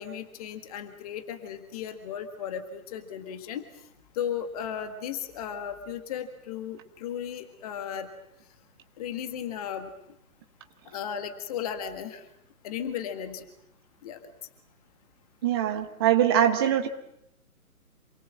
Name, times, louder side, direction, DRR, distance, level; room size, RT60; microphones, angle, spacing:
voice 1, 0.0-3.7 4.2-8.1 9.0-9.9 10.9-12.2 12.6-13.5 14.0-14.2 16.4-16.5, left 8 dB, 25° left, 8 dB, 1.7 m, -35 dB
voice 2, 15.4-16.9, right 10 dB, 15° right, 6 dB, 0.9 m, -23 dB
28.0 x 22.0 x 7.6 m, 0.81 s
figure-of-eight pair, 140°, 43 cm